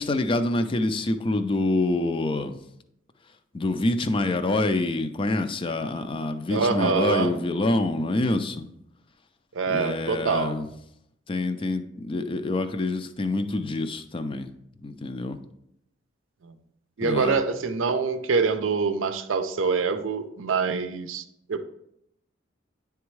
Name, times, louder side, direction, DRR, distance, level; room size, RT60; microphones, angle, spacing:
voice 1, 0.0-2.6 3.5-8.7 9.7-10.7 11.3-14.5 14.8-15.4 17.0-17.4, left 2 dB, 25° left, 9 dB, 0.4 m, -26 dB
voice 2, 6.5-7.3 9.5-10.6 16.4-16.5 17.0-21.2 21.5-21.6, right 5 dB, 80° right, 10 dB, 0.5 m, -25 dB
9.6 x 3.5 x 3.1 m, 0.77 s
head